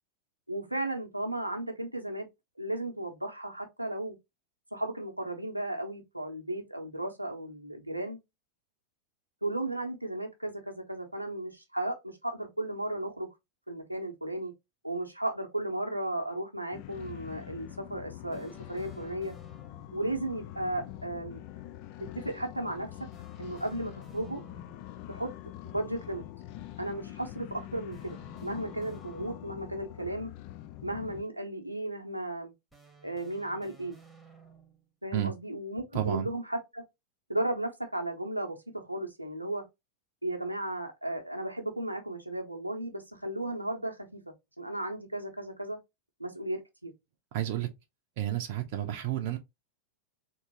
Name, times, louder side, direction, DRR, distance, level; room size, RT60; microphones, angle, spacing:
voice 1, 0.5-2.3 2.6-4.2 4.7-8.2 9.4-13.3 13.7-14.5 14.8-19.3 19.9-21.4 22.0-23.1 23.4-24.4 25.1-25.3 25.6-26.2 26.8-30.3 30.8-32.5 33.0-34.0 35.0-36.8 37.3-39.7 40.2-44.2 44.6-45.8 46.2-46.9, right 1 dB, 90° right, 0.9 m, -35 dB
sound 1, 16.7-31.2, left 14 dB, 45° left, 0.4 m, -44 dB
sound 2, 18.3-20.1 23.1-25.0 27.9-29.9 32.7-34.9, right 3 dB, ahead, 1.1 m, -56 dB
voice 2, 35.9-36.3 47.3-47.7 48.2-49.4, right 11 dB, 50° right, 0.6 m, -30 dB
3.8 x 2.9 x 2.8 m
figure-of-eight pair, 90°, 0 cm